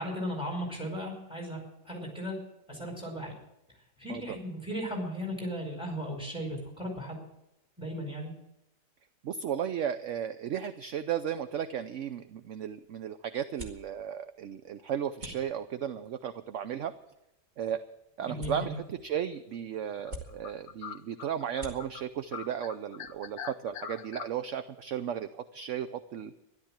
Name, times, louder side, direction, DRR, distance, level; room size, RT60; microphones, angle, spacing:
voice 1, 0.0-2.4 2.7-3.3 4.0-7.2 7.8-8.3 18.2-18.7, equal, 5° right, 0 dB, 4.9 m, -36 dB
voice 2, 9.2-16.9 17.6-17.8 18.2-26.3, right 9 dB, 60° right, 11 dB, 0.8 m, -35 dB
sound 1, 12.1-23.7, left 1 dB, 25° right, 2.3 m, -51 dB
sound 2, 18.8-19.1 19.6-19.7 20.1-22.0 22.3-24.3, left 8 dB, 60° left, 0.7 m, -42 dB
13.5 x 12.0 x 7.3 m, 0.88 s
omnidirectional pair, 1.8 m